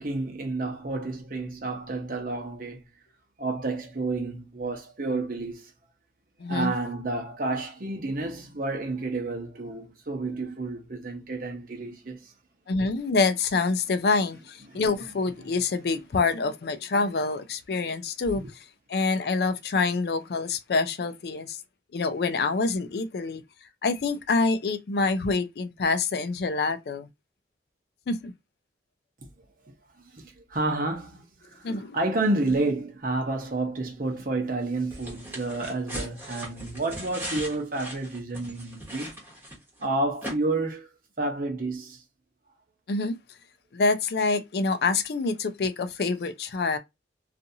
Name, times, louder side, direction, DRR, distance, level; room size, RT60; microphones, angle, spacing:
voice 1, 0.0-2.8 3.4-5.7 6.5-12.3 14.7-14.8 15.4-15.5 18.4-18.5 29.6-29.7 30.1-31.7 31.9-39.2 39.8-40.9 41.2-42.0, right 2 dB, 50° right, 0.8 m, -30 dB
voice 2, 6.4-6.7 12.7-18.6 18.9-21.6 21.9-23.4 23.8-27.1 28.1-28.3 31.6-32.0 42.9-43.2 43.7-46.8, left 3 dB, 60° left, 0.4 m, -26 dB
sound 1, 34.9-39.8 40.2-40.3, equal, 10° right, 0.9 m, -38 dB
2.6 x 2.5 x 2.6 m
head